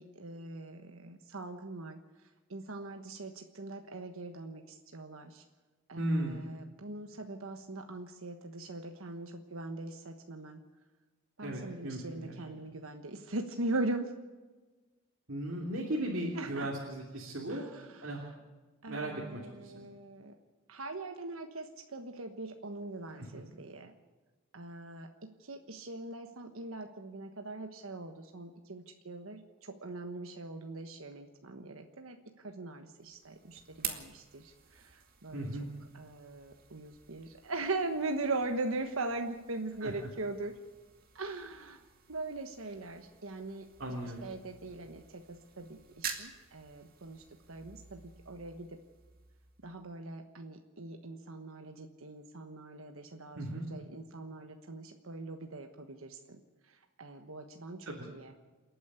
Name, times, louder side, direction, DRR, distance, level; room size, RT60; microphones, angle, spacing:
voice 1, 0.0-2.0 2.5-5.4 5.9-10.6 11.4-14.1 16.3-16.7 17.5-18.3 18.8-20.3 20.7-23.9 24.5-35.5 35.9-40.5 41.1-41.8 42.1-43.7 44.2-48.8 49.6-58.3, right 2 dB, 85° right, 5 dB, 1.3 m, -41 dB
voice 2, 6.0-6.4 11.4-12.4 15.3-17.6 18.0-18.3 18.9-19.8 23.2-23.3 35.3-35.7 39.8-39.9 43.8-44.3 53.3-53.7 57.9-58.1, right 1 dB, 65° right, -2 dB, 3.1 m, -37 dB
sound 1, 33.0-49.9, right 7 dB, 45° right, 2.3 m, -49 dB
28.5 x 9.5 x 9.7 m, 1.3 s
head